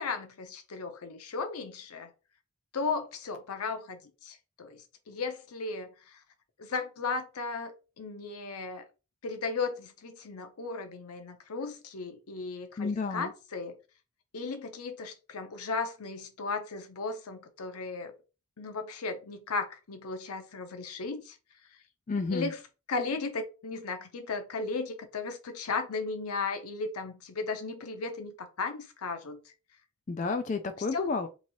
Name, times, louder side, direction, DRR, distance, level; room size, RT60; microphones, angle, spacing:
voice 1, 0.0-2.1 2.7-6.2 6.6-8.8 9.2-13.8 14.3-18.1 18.6-21.4 22.3-22.6 22.9-29.5 30.9-31.1, left 4 dB, 85° left, 0.7 m, -36 dB
voice 2, 12.8-13.3 22.1-22.5 30.1-31.3, left 4 dB, 35° left, 0.3 m, -31 dB
3.0 x 2.7 x 4.0 m
head